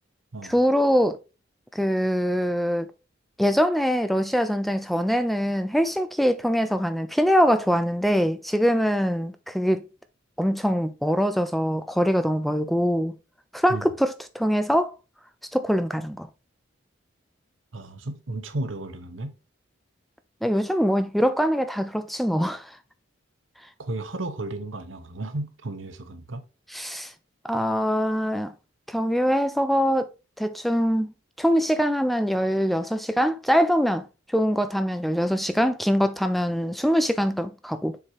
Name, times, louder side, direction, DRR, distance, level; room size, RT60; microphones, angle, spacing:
voice 1, 0.5-1.2 1.7-2.9 3.4-9.8 10.4-13.1 13.5-14.9 15.5-16.3 20.4-22.8 26.7-27.1 27.4-28.5 28.9-30.1 30.4-31.1 31.4-38.0, equal, ahead, 0.3 m, -23 dB
voice 2, 17.7-19.3 23.8-26.4, right 2 dB, 80° right, 1.1 m, -33 dB
7.3 x 4.8 x 2.8 m
head